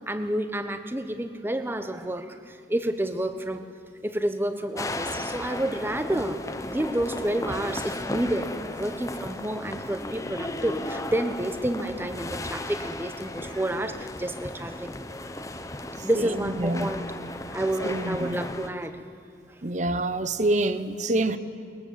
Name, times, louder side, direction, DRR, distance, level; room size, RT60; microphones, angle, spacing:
voice 1, 0.1-3.7 4.0-6.4 6.7-14.9 16.0-17.0 17.5-19.0, right 1 dB, 10° right, 9 dB, 0.9 m, -29 dB
sound 1, 4.8-18.7, left 1 dB, 15° left, 0.9 m, -35 dB
voice 2, 15.9-16.9 17.8-18.4 19.6-21.4, right 2 dB, 40° right, 12 dB, 0.9 m, -27 dB
21.5 x 20.5 x 7.5 m, 2.4 s
head